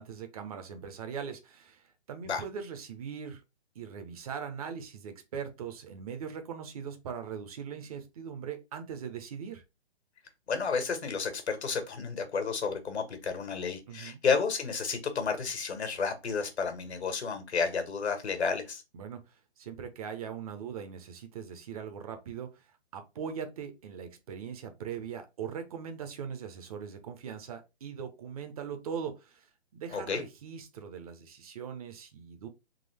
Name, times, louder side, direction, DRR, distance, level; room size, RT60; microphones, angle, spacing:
voice 1, 0.0-3.4 3.7-9.6 13.9-14.2 18.9-19.2 19.6-22.7 22.9-29.5 29.7-32.5, right 7 dB, 35° right, 0.8 m, -40 dB
voice 2, 10.5-18.8 29.9-30.2, left 5 dB, 75° left, 1.5 m, -31 dB
3.8 x 3.3 x 3.3 m
hypercardioid pair, 145°, 33 cm